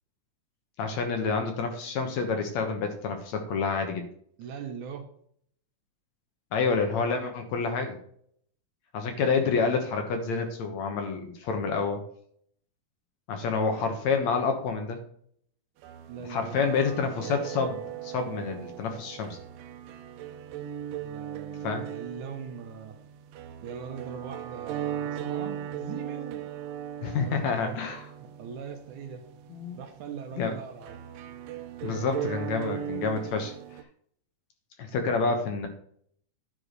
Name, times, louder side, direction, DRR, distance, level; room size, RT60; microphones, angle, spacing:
voice 1, 0.8-4.0 6.5-8.0 8.9-12.0 13.3-15.0 16.3-19.4 21.6-21.9 27.0-28.0 29.5-29.8 30.4-30.5 31.8-33.5 34.8-35.7, left 5 dB, 65° left, 5 dB, 2.2 m, -28 dB
voice 2, 4.4-5.1 16.1-16.9 21.0-23.0 23.6-26.5 27.2-27.8 28.4-29.2 29.7-31.0, right 7 dB, 70° right, 6 dB, 2.3 m, -41 dB
sound 1, 15.8-33.8, right 10 dB, 90° right, 2.4 m, -38 dB
10.0 x 4.7 x 4.8 m, 0.63 s
omnidirectional pair, 3.8 m